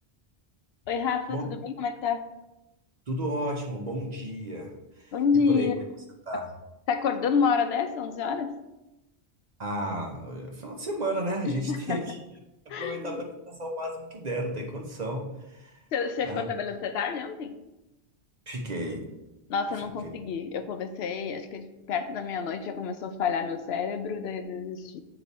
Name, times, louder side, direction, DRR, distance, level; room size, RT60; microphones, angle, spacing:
voice 1, 0.9-2.3 5.1-5.8 6.9-8.6 11.4-12.0 12.7-13.2 15.9-17.6 19.5-25.0, left 6 dB, 80° left, 8 dB, 0.8 m, -29 dB
voice 2, 3.1-5.1 5.5-5.7 6.3-6.5 9.6-12.2 12.7-15.8 16.2-16.4 18.5-19.1, right 1 dB, 45° right, 1 dB, 0.9 m, -33 dB
8.4 x 3.0 x 4.0 m, 0.99 s
omnidirectional pair, 1.0 m